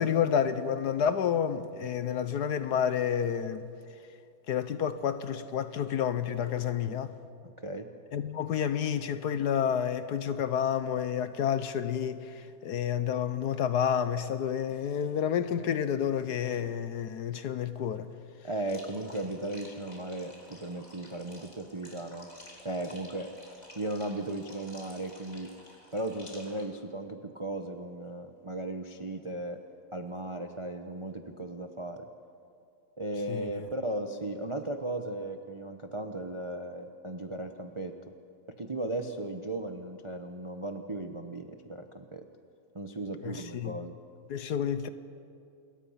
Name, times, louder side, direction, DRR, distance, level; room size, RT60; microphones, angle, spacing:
voice 1, 0.0-3.7 4.5-7.1 8.1-18.1 33.3-33.7 43.2-43.8 44.3-44.9, left 8 dB, 65° left, 1.3 m, -30 dB
voice 2, 7.4-7.9 18.4-22.3 22.6-23.3 23.7-25.5 25.9-29.6 29.9-32.1 33.0-37.9 38.6-42.2 42.7-44.0, right 1 dB, 30° right, 0.5 m, -36 dB
sound 1, 18.7-26.7, left 1 dB, 20° left, 3.5 m, -52 dB
27.0 x 21.5 x 5.8 m
omnidirectional pair, 2.1 m